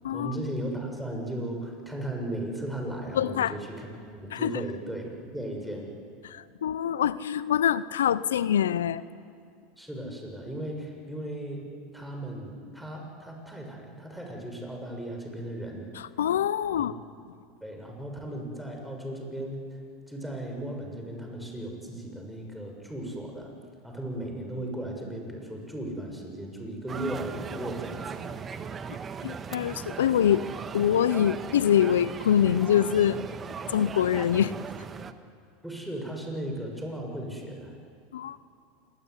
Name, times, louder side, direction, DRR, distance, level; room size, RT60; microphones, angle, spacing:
voice 1, 0.1-5.9 9.8-11.7 11.9-16.2 16.7-16.9 17.6-19.8 20.1-23.5 23.8-28.2 35.6-37.8, right 1 dB, 5° right, 1 dB, 6.8 m, -36 dB
voice 2, 3.1-3.5 4.3-4.6 6.2-9.0 15.9-16.9 28.9-29.0 29.2-30.4 30.7-33.2 33.7-34.5 38.1-38.4, left 10 dB, 85° left, 17 dB, 0.7 m, -25 dB
sound 1, 26.9-35.1, right 6 dB, 30° right, 1.5 m, -38 dB
27.5 x 21.0 x 9.8 m, 2.3 s
hypercardioid pair, 100°, 0 cm